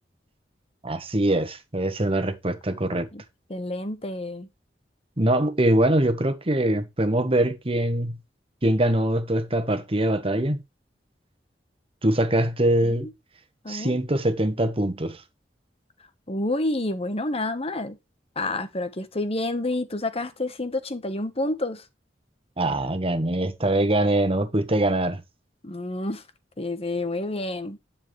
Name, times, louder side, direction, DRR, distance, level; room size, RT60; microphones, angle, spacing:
voice 1, 0.8-3.1 5.2-8.2 8.6-10.6 12.0-13.1 13.7-15.2 22.6-25.2, right 1 dB, 35° right, 1.5 m, -23 dB
voice 2, 3.5-4.5 12.8-13.1 13.6-14.0 16.3-18.0 18.3-21.8 25.6-26.2 26.6-27.8, left 2 dB, 35° left, 1.3 m, -29 dB
10.5 x 7.1 x 3.3 m
head